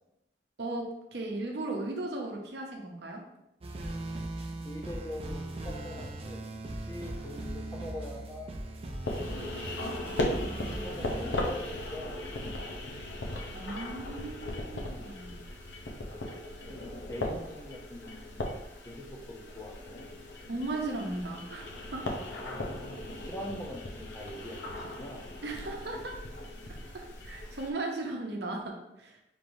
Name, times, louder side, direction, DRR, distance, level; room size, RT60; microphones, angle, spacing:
voice 1, 1.1-3.2 10.4-10.8 13.5-15.4 20.5-22.0 25.4-26.2 26.9-29.2, right 2 dB, 65° right, 1 dB, 0.8 m, -37 dB
sound 1, 3.6-11.5, right 1 dB, 30° right, 0.4 m, -39 dB
voice 2, 4.6-8.5 9.3-10.0 10.7-12.2 16.7-18.5 18.8-20.0 22.3-25.3, left 1 dB, 15° left, 0 dB, 0.6 m, -43 dB
sound 2, 9.0-27.7, left 1 dB, 80° left, 0.7 m, -38 dB
5.2 x 3.2 x 2.7 m, 0.86 s
head